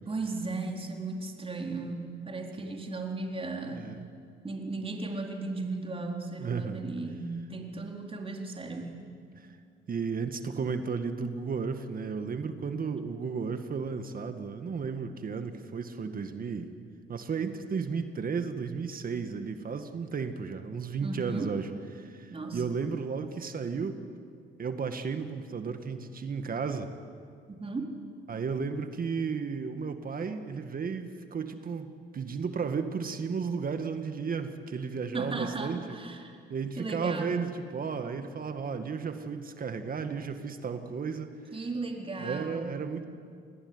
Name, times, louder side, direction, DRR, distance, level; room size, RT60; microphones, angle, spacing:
voice 1, 0.1-3.9 4.4-8.9 21.0-21.5 22.3-22.6 27.5-28.0 35.1-36.3 36.8-37.3 41.5-42.7, right 3 dB, 30° right, 2 dB, 4.3 m, -36 dB
voice 2, 3.7-4.1 6.4-6.8 9.4-9.5 9.9-16.7 17.1-21.7 21.9-24.0 24.6-26.9 28.3-35.8 36.5-41.4 42.2-43.0, right 5 dB, 45° right, 8 dB, 1.9 m, -34 dB
27.5 x 20.0 x 9.7 m, 2.2 s
cardioid pair, 90°, 20 cm